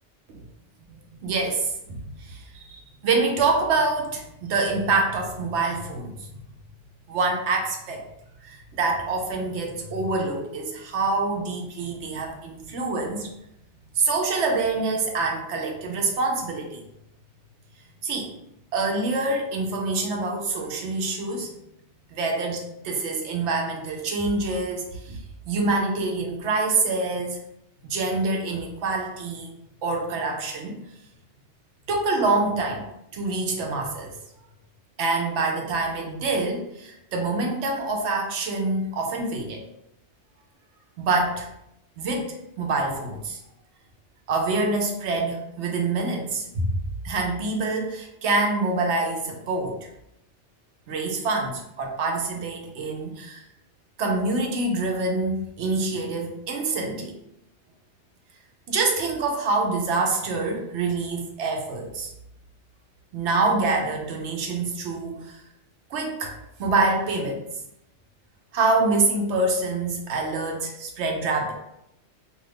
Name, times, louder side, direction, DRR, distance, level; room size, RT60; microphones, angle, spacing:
voice 1, 0.9-6.1 7.1-8.0 8.4-13.3 14.0-16.8 18.0-18.3 18.7-21.5 22.1-27.4 27.8-29.5 29.8-30.8 31.9-32.8 33.1-34.1 35.0-39.6 41.0-41.5 42.0-43.4 44.3-46.8 47.0-49.9 50.9-53.4 54.0-57.2 58.7-62.1 63.1-65.4 65.9-66.3 66.6-67.4 68.5-71.5, right 3 dB, 75° right, 2 dB, 0.9 m, -26 dB
2.6 x 2.4 x 3.3 m, 0.82 s
omnidirectional pair, 1.2 m